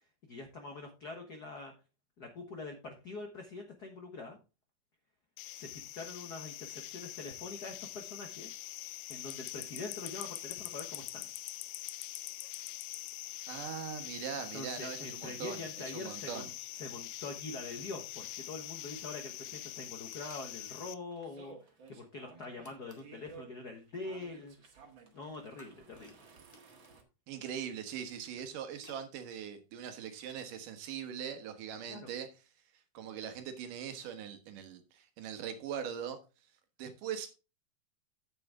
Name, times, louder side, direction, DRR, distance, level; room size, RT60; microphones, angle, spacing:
voice 1, 0.3-1.7 2.2-4.4 5.5-8.5 9.1-11.3 14.5-21.5 21.9-24.8 25.1-26.2 31.9-32.1, left 3 dB, 50° left, 1.2 m, -44 dB
sound 1, 5.4-20.9, left 15 dB, 85° left, 2.2 m, -44 dB
voice 2, 13.5-15.6 15.9-16.5 27.3-32.3 32.9-36.2 36.8-37.3, right 8 dB, 85° right, 3.0 m, -41 dB
sound 2, 20.0-20.5 22.6-23.2 25.6-27.0 28.1-29.1, left 2 dB, 10° left, 1.3 m, -59 dB
sound 3, 21.1-27.0, right 5 dB, 45° right, 2.1 m, -56 dB
9.1 x 8.7 x 3.6 m
omnidirectional pair, 3.7 m